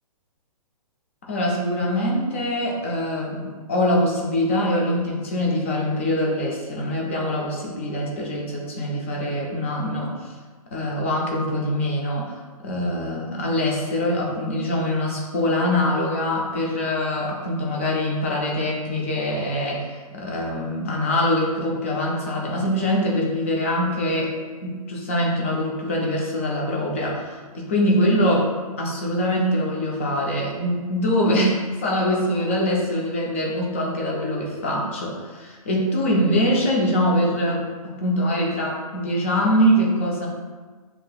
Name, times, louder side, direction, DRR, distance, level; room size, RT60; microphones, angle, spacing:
voice 1, 1.3-10.1 10.7-12.3 12.6-24.4 24.6-28.5 28.8-40.3, equal, 20° left, -2 dB, 0.4 m, -23 dB
5.7 x 2.8 x 2.3 m, 1.4 s
hypercardioid pair, 175°, 19 cm